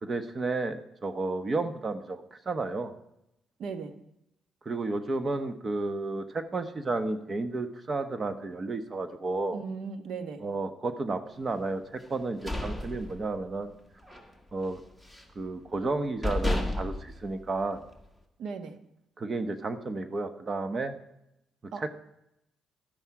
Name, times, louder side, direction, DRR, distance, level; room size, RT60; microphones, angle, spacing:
voice 1, 0.0-2.9 4.6-9.6 10.4-13.7 14.5-14.8 15.3-17.8 19.2-21.0 21.8-21.9, right 3 dB, 35° right, 10 dB, 1.0 m, -32 dB
voice 2, 3.6-3.9 9.5-10.4 18.4-18.8 21.7-21.9, right 5 dB, 75° right, 8 dB, 1.2 m, -37 dB
sound 1, 12.1-13.7 14.0-14.3 14.6-15.4 15.9-16.0 16.2-18.1, left 1 dB, 5° right, 1.8 m, -32 dB
12.0 x 9.8 x 4.8 m, 0.82 s
cardioid pair, 90°, 0 cm